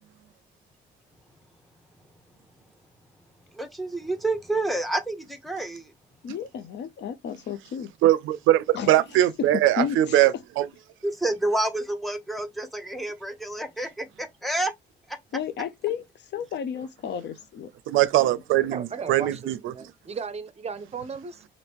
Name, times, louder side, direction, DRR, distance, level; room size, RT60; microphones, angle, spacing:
voice 1, 3.5-5.9 11.0-14.7, right 2 dB, ahead, 0.8 m, -29 dB
voice 2, 6.2-7.9 8.7-9.0 9.5-10.2 15.3-16.0 16.3-17.7 18.3-18.7, left 7 dB, 60° left, 0.5 m, -32 dB
voice 3, 8.0-10.7 17.9-19.7, right 14 dB, 90° right, 0.4 m, -21 dB
voice 4, 18.7-21.4, right 5 dB, 30° right, 0.6 m, -36 dB
2.9 x 2.5 x 3.5 m
cardioid pair, 90°, 20 cm